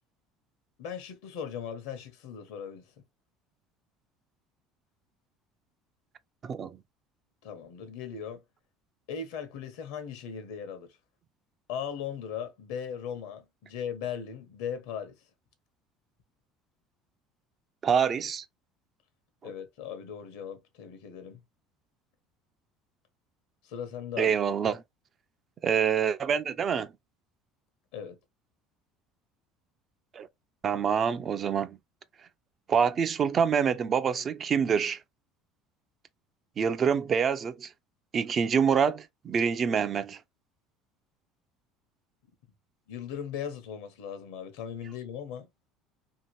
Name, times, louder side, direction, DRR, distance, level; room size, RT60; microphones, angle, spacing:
voice 1, 0.8-2.8 7.4-8.4 9.1-11.0 11.7-15.2 19.4-21.4 23.6-24.4 27.9-28.2 42.9-45.5, left 8 dB, 80° left, 0.9 m, -38 dB
voice 2, 6.4-6.8 17.8-18.4 24.2-24.8 25.6-26.9 30.1-30.3 30.6-31.8 32.7-35.0 36.6-37.7 38.1-40.2, right 7 dB, 40° right, 0.4 m, -26 dB
2.9 x 2.5 x 2.9 m
supercardioid pair, 95°, 0 cm